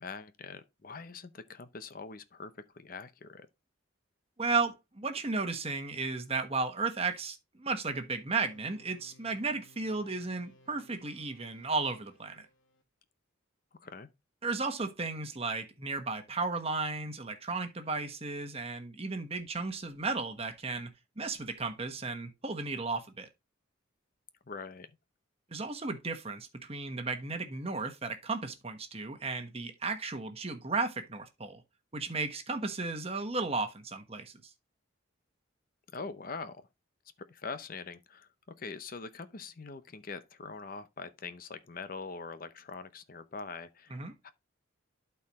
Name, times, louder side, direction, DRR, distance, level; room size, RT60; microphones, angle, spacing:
voice 1, 0.0-3.5 13.8-14.1 24.5-24.9 35.9-36.6 37.2-38.3 38.6-44.3, left 4 dB, 45° left, 0.7 m, -43 dB
voice 2, 4.4-12.5 14.4-23.3 25.5-31.6 31.9-34.3 43.9-44.1, right 4 dB, 30° right, 1.2 m, -34 dB
sound 1, 8.4-12.8, left 1 dB, 70° left, 2.3 m, -62 dB
12.0 x 4.6 x 3.1 m
head